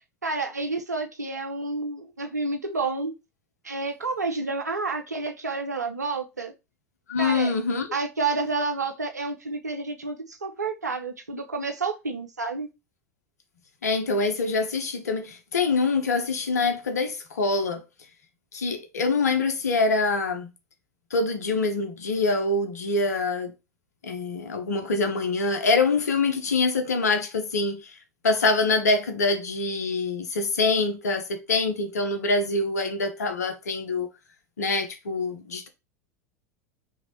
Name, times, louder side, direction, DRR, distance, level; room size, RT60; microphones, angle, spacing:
voice 1, 0.2-3.1 3.6-6.5 7.2-7.5 7.9-12.7, right 3 dB, 80° right, 0.5 m, -29 dB
voice 2, 7.1-7.9 13.8-17.8 18.5-20.5 21.1-23.5 24.0-28.0 28.2-34.1 34.6-35.7, left 3 dB, 70° left, 0.6 m, -25 dB
3.0 x 2.6 x 2.9 m
figure-of-eight pair, 85°, 9 cm